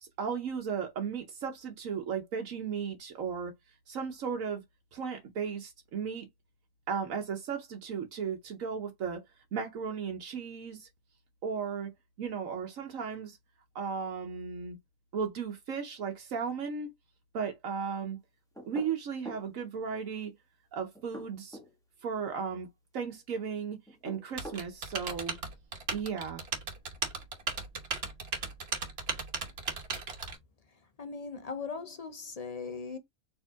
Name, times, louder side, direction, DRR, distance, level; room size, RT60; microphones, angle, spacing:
voice 1, 0.0-3.5 3.9-4.6 4.9-6.3 6.9-9.2 9.5-10.9 11.4-11.9 12.2-13.4 13.7-14.8 15.1-16.9 17.3-18.2 18.7-20.3 20.7-21.6 22.0-22.7 22.9-23.8 24.0-25.4 25.9-26.4, right 6 dB, 75° right, 1.3 m, -35 dB
sound 1, 18.6-19.5 21.0-21.7 23.9-24.7, equal, 5° left, 1.0 m, -44 dB
Typing, 24.4-30.4, right 4 dB, 50° right, 1.2 m, -36 dB
voice 2, 31.0-33.0, left 5 dB, 35° left, 0.7 m, -39 dB
4.5 x 3.0 x 3.5 m
omnidirectional pair, 1.4 m